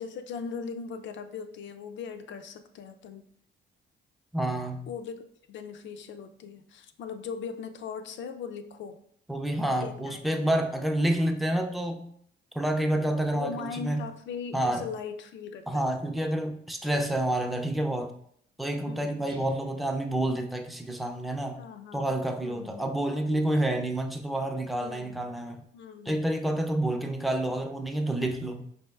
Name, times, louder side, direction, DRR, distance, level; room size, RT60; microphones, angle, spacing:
voice 1, 0.0-3.2 4.9-9.0 9.8-10.5 13.3-15.8 18.8-19.2 21.5-22.2 22.4-22.9 24.8-25.2 25.7-26.2, left 6 dB, 70° left, 8 dB, 0.4 m, -39 dB
voice 2, 4.3-4.9 9.3-12.1 12.5-14.1 14.5-14.9 15.7-18.2 18.6-21.6 21.9-25.6 26.1-28.7, right 1 dB, ahead, 4 dB, 0.4 m, -29 dB
Guitar, 19.3-20.5, left 3 dB, 25° right, 0.8 m, -43 dB
4.2 x 3.0 x 2.3 m, 0.68 s
cardioid pair, 90°, 20 cm